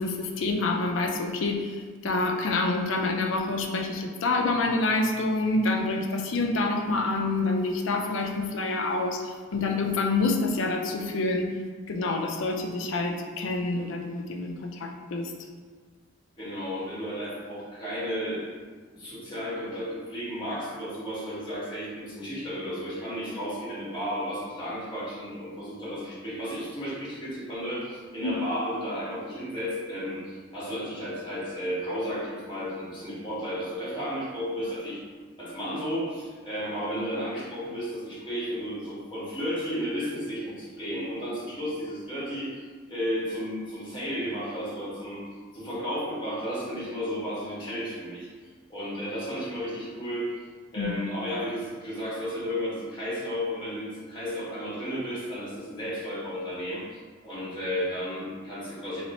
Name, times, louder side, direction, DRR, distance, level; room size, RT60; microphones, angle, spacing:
voice 1, 0.0-11.5 11.9-15.3 28.2-28.4 50.8-50.9, left 3 dB, 70° left, 3 dB, 0.5 m, -27 dB
voice 2, 16.4-18.4 18.9-35.0 35.4-45.2 45.5-48.3 48.7-50.3 50.7-56.8 57.2-59.0, equal, 25° left, -8 dB, 1.4 m, -33 dB
3.2 x 3.0 x 4.1 m, 1.6 s
head